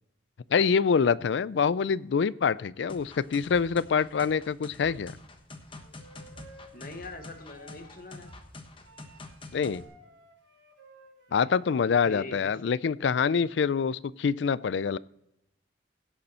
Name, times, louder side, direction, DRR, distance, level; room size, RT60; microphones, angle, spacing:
voice 1, 0.5-5.1 9.5-9.8 11.3-15.0, left 6 dB, 70° left, 19 dB, 0.4 m, -25 dB
sound 1, 2.9-9.8, left 2 dB, 30° left, 1.2 m, -46 dB
Wind instrument woodwind instrument, 5.7-8.4 8.8-12.0, right 1 dB, 85° right, 3.2 m, -55 dB
voice 2, 6.7-8.3 11.3-12.4, left 2 dB, 50° left, 6 dB, 1.5 m, -43 dB
17.0 x 6.7 x 4.3 m, 0.83 s
head